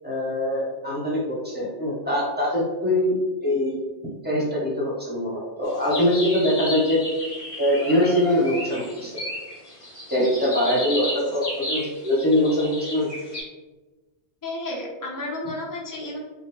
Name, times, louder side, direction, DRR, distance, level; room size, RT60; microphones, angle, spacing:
voice 1, 0.0-3.8 4.2-7.0 7.6-9.2 10.1-13.1, left 1 dB, 10° right, -5 dB, 1.0 m, -23 dB
sound 1, 5.6-13.4, left 1 dB, 40° left, 1.4 m, -33 dB
voice 2, 14.4-16.2, left 2 dB, 20° left, -2 dB, 0.6 m, -32 dB
4.6 x 2.2 x 3.4 m, 1.2 s
omnidirectional pair, 1.1 m